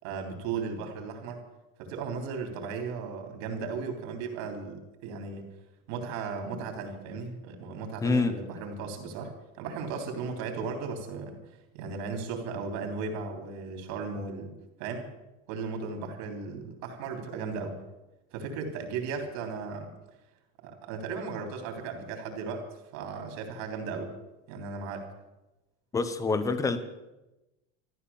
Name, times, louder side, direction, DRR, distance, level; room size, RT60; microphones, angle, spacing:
voice 1, 0.0-1.4 1.8-5.4 5.9-11.4 11.7-14.5 14.8-15.1 15.5-17.8 18.3-19.9 20.6-22.6 22.9-24.1 24.5-25.1, right 5 dB, 55° right, 4 dB, 3.4 m, -36 dB
voice 2, 8.0-8.4 25.9-26.8, left 3 dB, 10° left, 11 dB, 0.6 m, -26 dB
14.0 x 12.0 x 7.1 m, 0.99 s
cardioid pair, 180°, 39 cm